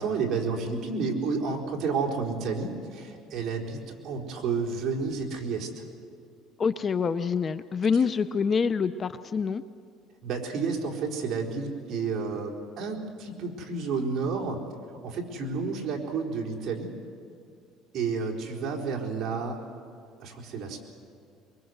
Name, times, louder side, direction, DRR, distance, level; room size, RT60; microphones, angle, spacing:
voice 1, 0.0-5.8 8.0-8.1 10.2-14.6 15.0-16.9 17.9-19.6 20.2-20.8, right 4 dB, 45° right, -1 dB, 4.3 m, -31 dB
voice 2, 6.6-9.6, left 5 dB, 30° left, 13 dB, 0.6 m, -26 dB
24.0 x 23.5 x 8.0 m, 2.4 s
cardioid pair, 130°, 0 cm